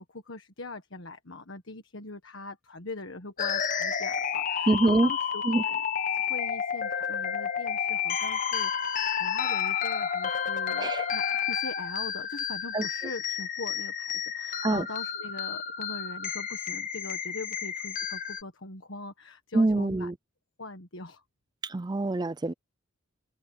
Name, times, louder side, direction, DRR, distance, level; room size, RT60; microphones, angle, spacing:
voice 1, 0.0-5.8 6.1-20.1 20.6-21.2, left 2 dB, 65° left, 1.6 m, -42 dB
sound 1, 3.4-18.4, left 7 dB, 40° left, 1.6 m, -31 dB
voice 2, 4.7-5.1 5.5-5.6 10.8-11.0 12.7-12.8 14.6-14.8 19.5-20.1 21.7-22.5, right 2 dB, 20° right, 0.4 m, -24 dB
head